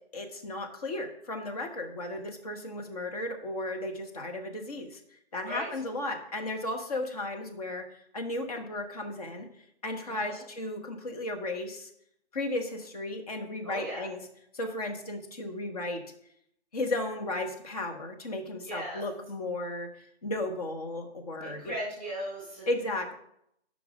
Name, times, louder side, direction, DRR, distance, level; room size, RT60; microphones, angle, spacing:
voice 1, 0.1-5.0 5.3-9.5 9.8-11.9 12.3-14.2 14.5-16.0 16.7-19.9 20.2-21.7 22.7-23.1, left 2 dB, 35° left, 4 dB, 1.1 m, -34 dB
voice 2, 10.0-10.4 13.6-14.0 18.6-19.0 21.4-22.7, equal, 5° left, -5 dB, 3.9 m, -37 dB
8.4 x 5.5 x 4.7 m, 0.74 s
figure-of-eight pair, 140°, 32 cm